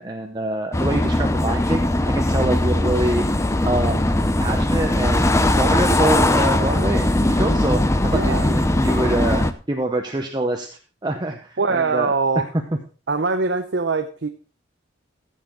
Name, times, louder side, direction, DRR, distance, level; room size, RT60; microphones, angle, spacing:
voice 1, 0.0-3.2 3.6-10.7 11.0-12.1, right 1 dB, 20° right, 3 dB, 0.8 m, -25 dB
sound 1, 0.7-9.5, left 1 dB, 15° left, 0.6 m, -20 dB
voice 2, 2.4-2.8 8.1-8.5 11.6-12.5 13.1-14.3, right 4 dB, 60° right, 6 dB, 0.7 m, -23 dB
15.0 x 7.5 x 3.7 m, 0.37 s
head